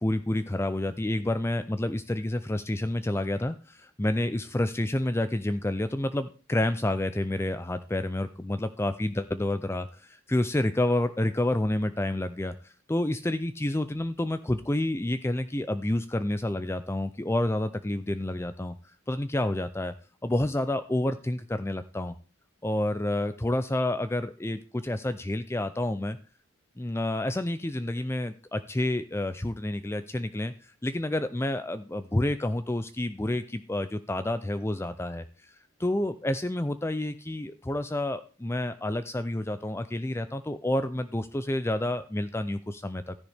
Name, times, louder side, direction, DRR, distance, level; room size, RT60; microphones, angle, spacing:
voice 1, 0.0-18.7 19.1-19.9 20.2-22.1 22.6-26.2 26.8-35.5 35.8-43.2, left 1 dB, 10° left, 11 dB, 0.4 m, -29 dB
13.0 x 10.5 x 3.5 m, 0.35 s
head